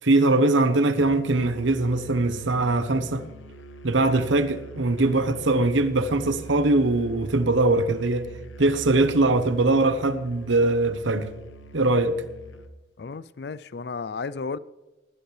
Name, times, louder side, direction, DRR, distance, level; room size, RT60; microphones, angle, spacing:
voice 1, 0.0-3.2 3.8-8.3 8.6-11.3 11.7-12.1, right 2 dB, 80° right, 0.9 m, -21 dB
Musical instrument, 0.9-12.8, right 2 dB, 90° left, 0.9 m, -44 dB
voice 2, 13.0-14.6, left 4 dB, 55° left, 0.4 m, -33 dB
19.5 x 10.5 x 3.3 m
head